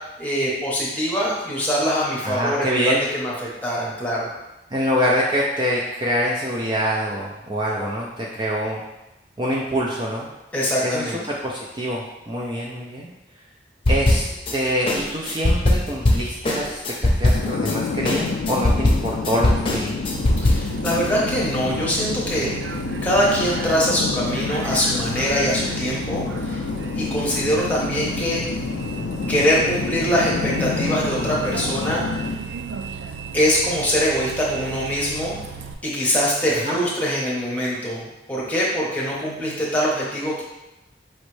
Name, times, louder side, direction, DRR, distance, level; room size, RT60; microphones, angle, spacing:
voice 1, 0.2-4.3 10.5-11.2 20.4-22.5 23.0-26.6 26.9-28.4 29.3-32.2 33.3-35.3 35.8-40.4, equal, 10° left, -5 dB, 1.0 m, -23 dB
voice 2, 2.2-3.0 4.7-8.8 9.4-10.3 10.8-13.1 13.9-14.2 14.5-20.0 36.5-36.8, equal, 25° right, -4 dB, 0.4 m, -25 dB
sound 1, 13.9-14.5 14.9-17.7 18.0-20.9, left 1 dB, 30° left, 0.7 m, -20 dB
sound 2, 17.3-32.3, left 4 dB, 80° left, 0.3 m, -28 dB
Bus, 20.1-35.7, right 5 dB, 90° right, 0.4 m, -34 dB
5.2 x 3.1 x 3.2 m, 0.96 s
head